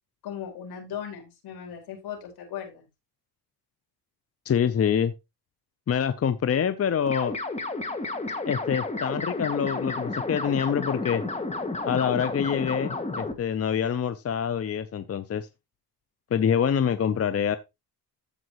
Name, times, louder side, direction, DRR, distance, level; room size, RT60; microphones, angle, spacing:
voice 1, 0.2-2.8, left 9 dB, 75° left, 5.0 m, -37 dB
voice 2, 4.4-5.1 5.9-7.4 8.4-11.2 11.9-15.5 16.3-17.6, left 8 dB, 40° left, 0.8 m, -26 dB
sound 1, 7.1-13.3, left 2 dB, 15° left, 2.0 m, -31 dB
14.5 x 5.2 x 3.1 m
cardioid pair, 95°, 38 cm